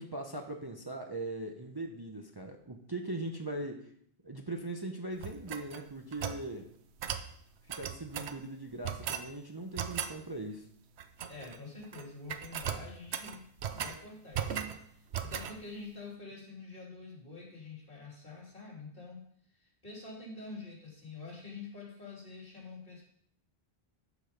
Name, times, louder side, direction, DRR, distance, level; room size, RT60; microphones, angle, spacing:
voice 1, 0.0-3.9 4.2-6.7 7.6-10.7, right 2 dB, 25° right, 2 dB, 0.8 m, -40 dB
sound 1, 5.2-6.4 7.0-7.3 7.7-8.4 8.8-9.3 9.8-10.2 11.0-11.6 11.8-12.0 12.3-14.0 14.3-14.8 15.1-15.6, right 8 dB, 80° right, 1.0 m, -37 dB
voice 2, 11.3-19.3 19.5-23.0, left 3 dB, 55° left, -3 dB, 3.5 m, -47 dB
12.5 x 5.1 x 5.2 m, 0.65 s
omnidirectional pair, 1.1 m